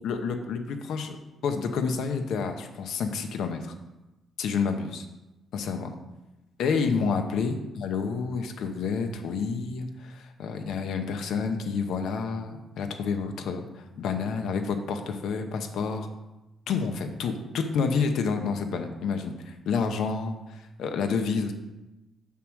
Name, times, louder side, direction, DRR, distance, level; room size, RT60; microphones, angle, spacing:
voice 1, 0.0-1.1 1.4-3.7 4.4-5.0 5.5-5.9 6.6-16.1 16.7-21.5, left 5 dB, 75° left, 6 dB, 0.8 m, -29 dB
6.9 x 4.7 x 6.2 m, 1.0 s
cardioid pair, 90°, 0 cm